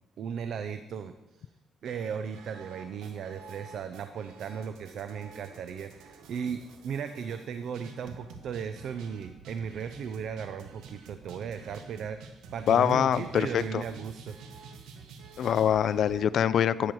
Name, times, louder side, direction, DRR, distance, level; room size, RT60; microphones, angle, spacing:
voice 1, 0.2-1.5 1.8-14.4, right 7 dB, 70° right, 9 dB, 0.6 m, -36 dB
sound 1, 1.8-16.2, right 4 dB, 85° right, 1.4 m, -49 dB
voice 2, 12.7-13.8 15.4-16.9, left 9 dB, 65° left, 16 dB, 0.5 m, -24 dB
12.5 x 8.8 x 4.7 m, 1.0 s
cardioid pair, 90°, 0 cm